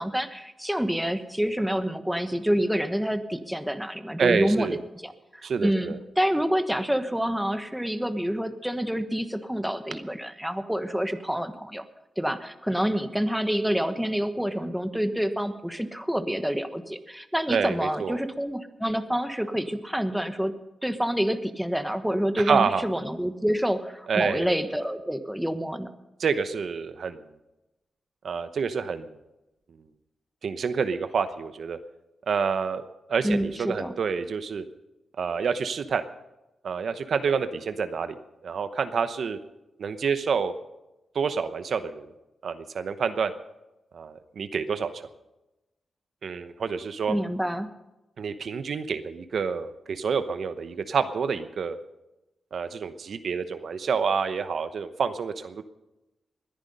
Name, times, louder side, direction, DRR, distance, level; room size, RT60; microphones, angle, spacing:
voice 1, 0.0-4.8 5.0-11.8 12.2-20.5 20.8-25.9 33.2-33.9 47.1-47.7, equal, 5° right, 9 dB, 1.2 m, -27 dB
voice 2, 4.2-4.8 5.4-6.0 17.5-18.2 22.5-22.8 24.1-24.5 26.2-27.2 28.2-29.1 30.4-31.8 32.3-32.8 33.1-34.7 35.2-36.0 36.6-38.2 38.4-39.4 39.8-40.5 41.1-42.1 42.4-43.3 43.9-45.0 46.2-47.1 48.2-51.8 52.5-55.6, right 6 dB, 70° right, 10 dB, 0.9 m, -28 dB
20.5 x 10.5 x 5.5 m, 0.98 s
cardioid pair, 80°, 0 cm